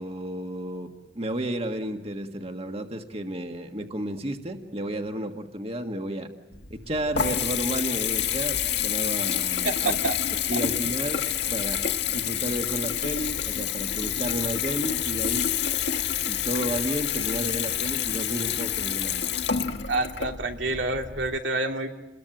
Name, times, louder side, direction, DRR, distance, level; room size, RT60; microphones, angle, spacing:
voice 1, 0.0-6.3 6.7-10.0 10.5-11.8 12.1-15.5 16.2-19.3, right 1 dB, 35° right, 5 dB, 1.6 m, -32 dB
Water tap faucet / Bathtub (filling or washing) / Trickle dribble, 6.5-21.4, left 9 dB, 65° left, 1.4 m, -28 dB
voice 2, 9.6-10.2 10.5-10.6 19.9-21.9, right 2 dB, 90° right, 3 dB, 2.8 m, -28 dB
29.0 x 22.0 x 9.1 m, 1.0 s
head